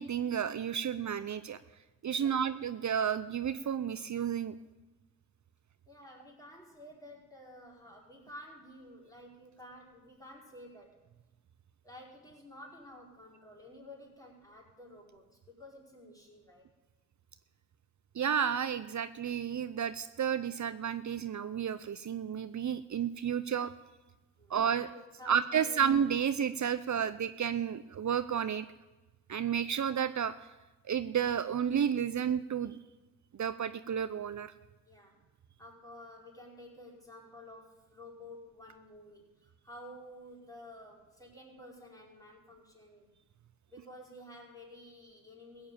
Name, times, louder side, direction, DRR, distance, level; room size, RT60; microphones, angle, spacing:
voice 1, 0.0-1.6 2.0-4.5 18.1-23.7 24.5-24.9 25.3-28.7 29.3-30.3 30.9-32.8 33.4-34.5, right 8 dB, 60° right, 13 dB, 0.6 m, -31 dB
voice 2, 2.2-2.5 5.9-11.0 11.8-16.7 24.4-25.8 34.9-35.2 35.6-43.1 43.7-45.7, left 1 dB, 10° left, -2 dB, 4.8 m, -52 dB
15.5 x 7.2 x 8.8 m, 1.1 s
cardioid pair, 55°, 33 cm